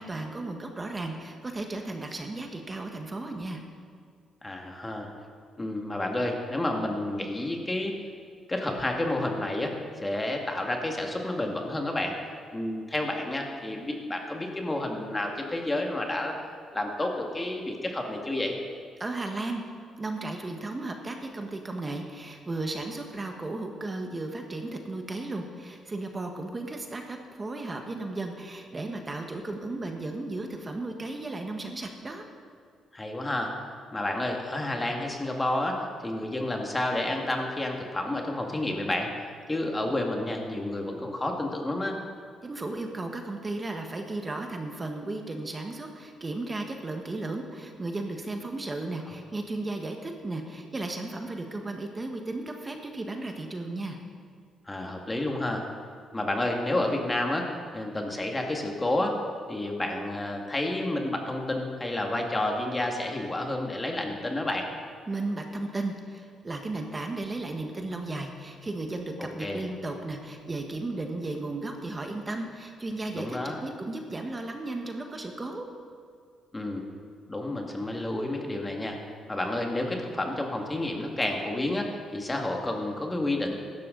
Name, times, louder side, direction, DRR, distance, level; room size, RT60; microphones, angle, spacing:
voice 1, 0.0-3.6 19.0-19.6 20.0-32.2 42.4-54.0 65.1-75.7, right 2 dB, 25° right, 3 dB, 1.4 m, -35 dB
voice 2, 4.4-5.1 5.6-7.9 8.5-9.8 10.0-12.2 12.5-16.3 16.7-18.6 32.9-33.6 33.9-39.1 39.5-42.0 54.7-55.7 56.1-59.2 59.5-64.7 69.2-69.7 73.1-73.6 76.5-76.9 77.3-83.6, left 1 dB, 20° left, 1 dB, 2.0 m, -30 dB
15.5 x 12.0 x 4.0 m, 2.1 s
cardioid pair, 90°, 0 cm